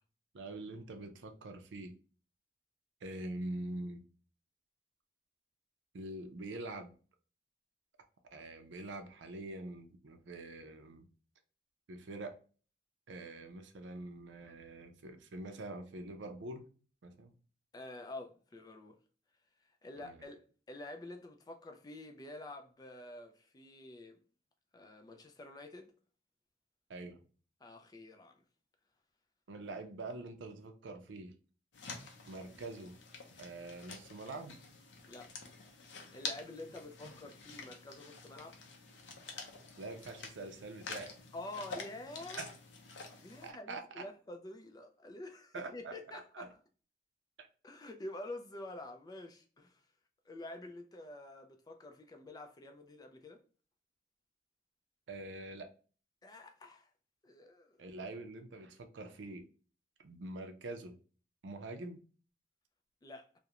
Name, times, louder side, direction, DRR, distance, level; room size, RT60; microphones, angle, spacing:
voice 1, 0.3-1.9 3.0-4.0 5.9-6.9 8.3-11.1 11.9-12.3 13.1-16.7 17.0-17.3 19.9-20.2 26.9-27.2 29.5-31.3 32.3-33.0 33.4-34.6 39.8-41.1 42.4-42.5 43.4-44.1 45.5-45.9 46.3-46.5 47.4-47.5 55.1-55.7 57.8-59.5 60.0-60.9 61.4-62.0, right 2 dB, 90° right, 0.5 m, -44 dB
voice 2, 17.7-19.0 19.6-24.2 24.7-25.9 27.6-28.4 29.7-29.8 35.1-35.3 35.8-38.6 41.3-42.5 43.2-46.5 47.6-49.8 50.3-53.4 56.2-56.9 57.2-57.8 63.0-63.3, left 2 dB, 20° left, 0.3 m, -48 dB
sound 1, 31.7-43.5, left 4 dB, 85° left, 0.6 m, -48 dB
2.4 x 2.1 x 2.8 m
head